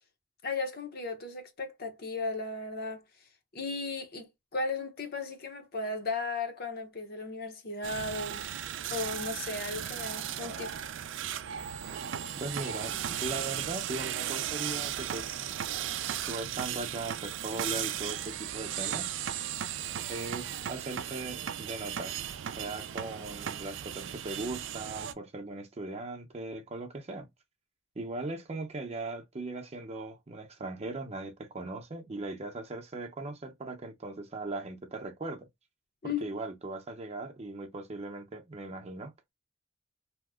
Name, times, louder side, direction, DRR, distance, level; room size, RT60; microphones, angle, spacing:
voice 1, 0.4-3.0 3.5-8.4 8.9-10.7 36.0-36.2, left 3 dB, 55° left, 0.8 m, -35 dB
sound 1, 7.8-25.1, right 10 dB, 80° right, 0.4 m, -36 dB
voice 2, 12.4-15.4 16.2-19.1 20.1-22.2 22.6-27.3 28.0-35.5 36.0-39.3, right 2 dB, 35° right, 0.6 m, -39 dB
2.8 x 2.0 x 3.4 m
head